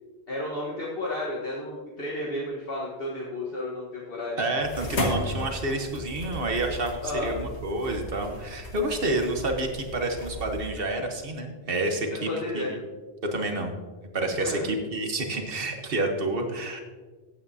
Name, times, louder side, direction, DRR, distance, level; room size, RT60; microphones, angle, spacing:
voice 1, 0.3-4.4 7.0-7.3 12.3-12.7 14.4-14.7, left 1 dB, 55° left, -5 dB, 1.7 m, -32 dB
voice 2, 4.4-12.3 12.5-12.8 13.3-13.7 14.1-16.8, right 2 dB, 55° right, 4 dB, 1.4 m, -29 dB
sound 1, 4.6-10.7, left 1 dB, 80° left, 2.1 m, -35 dB
15.0 x 8.6 x 2.8 m, 1.3 s
omnidirectional pair, 1.1 m